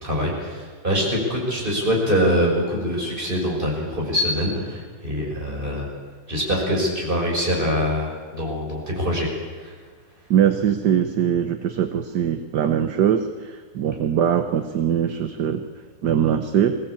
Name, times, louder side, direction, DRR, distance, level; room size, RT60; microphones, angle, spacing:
voice 1, 0.0-5.9 6.3-9.3 9.6-9.7, equal, 25° right, -2 dB, 6.6 m, -24 dB
voice 2, 10.3-15.6 16.0-16.8, right 9 dB, 70° right, 8 dB, 1.6 m, -21 dB
22.5 x 18.0 x 8.6 m, 1.5 s
omnidirectional pair, 2.0 m